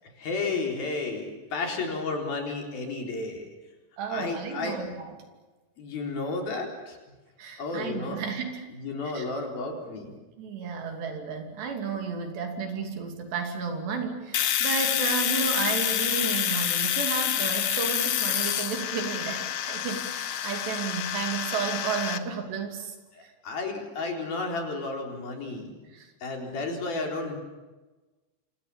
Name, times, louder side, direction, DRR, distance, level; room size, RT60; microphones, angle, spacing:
voice 1, 0.2-3.5 4.1-4.8 5.8-7.0 7.6-8.2 8.7-10.1 23.2-25.7 26.2-27.4, left 3 dB, 55° left, 2 dB, 5.7 m, -32 dB
voice 2, 4.0-5.2 7.4-8.7 9.0-9.3 10.4-23.3 24.0-24.1 25.9-26.1, right 5 dB, 65° right, 4 dB, 4.9 m, -33 dB
Domestic sounds home sounds, 14.3-22.2, left 10 dB, 90° left, 1.6 m, -28 dB
27.5 x 27.0 x 7.3 m, 1.2 s
omnidirectional pair, 5.3 m